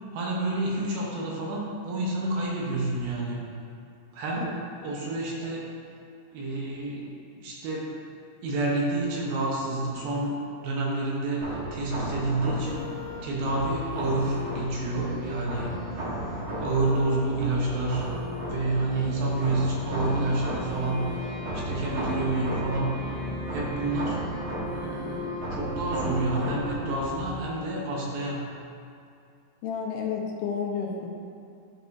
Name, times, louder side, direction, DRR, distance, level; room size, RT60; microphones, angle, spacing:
voice 1, 0.1-3.4 4.1-5.6 6.3-7.1 7.4-7.9 8.4-10.4 10.6-12.9 13.2-15.7 16.2-18.1 18.4-21.1 21.5-23.0 23.5-24.3 24.7-28.4, right 2 dB, 75° right, -3 dB, 2.7 m, -29 dB
sound 1, 11.4-27.4, equal, 55° right, 1.5 m, -34 dB
voice 2, 29.6-31.1, left 6 dB, 80° left, -1 dB, 2.5 m, -31 dB
12.0 x 4.8 x 2.6 m, 2.4 s
omnidirectional pair, 4.4 m